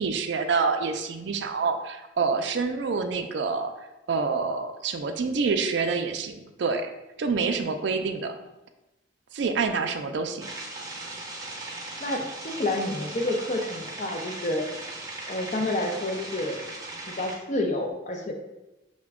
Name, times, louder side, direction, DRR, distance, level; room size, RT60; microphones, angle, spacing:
voice 1, 0.0-3.7 4.1-6.9 7.2-8.4 9.3-10.5, right 4 dB, 60° right, 6 dB, 0.4 m, -27 dB
sound 1, 10.4-17.4, right 2 dB, 20° right, 0.6 m, -38 dB
voice 2, 12.0-14.6 15.3-16.6 17.1-18.3, left 1 dB, 40° left, 2 dB, 0.5 m, -29 dB
5.8 x 2.2 x 3.5 m, 0.99 s
head